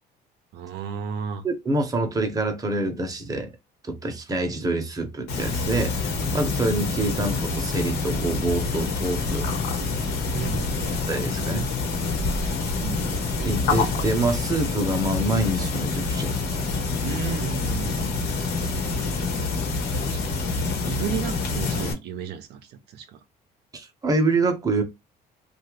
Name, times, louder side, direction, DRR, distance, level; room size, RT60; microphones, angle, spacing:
voice 1, 0.5-1.4 10.3-10.9 12.4-12.5 12.8-13.2 17.0-18.3 20.1-20.2 20.8-23.2, right 8 dB, 75° right, 0.5 m, -33 dB
voice 2, 1.4-3.5 3.8-9.5 11.1-11.7 13.4-16.3 23.7-24.8, right 2 dB, 20° right, 0.8 m, -26 dB
sound 1, 5.3-21.9, left 4 dB, 85° left, 1.1 m, -27 dB
2.7 x 2.4 x 3.1 m
cardioid pair, 110°, 17 cm